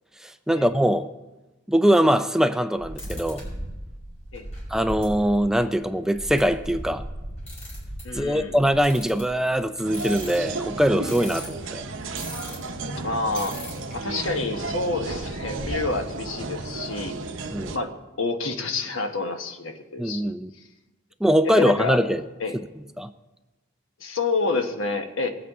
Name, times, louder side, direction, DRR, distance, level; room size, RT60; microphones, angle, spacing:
voice 1, 0.2-1.1 1.7-3.4 4.7-7.0 8.1-11.9 17.5-17.7 20.0-20.5 21.2-22.2 23.0-23.1, equal, 5° right, 9 dB, 0.4 m, -22 dB
sound 1, 2.8-12.8 13.3-14.0 14.3-14.4 14.6-15.8, equal, 35° left, 5.4 m, -38 dB
voice 2, 8.0-8.6 13.0-13.6 13.9-17.1 17.7-20.3 21.5-22.0 22.4-22.5 24.0-25.3, left 3 dB, 85° left, 6 dB, 1.1 m, -28 dB
sound 2, 9.8-17.8, right 3 dB, 80° right, 0.9 m, -33 dB
20.5 x 8.4 x 3.6 m, 1.1 s
head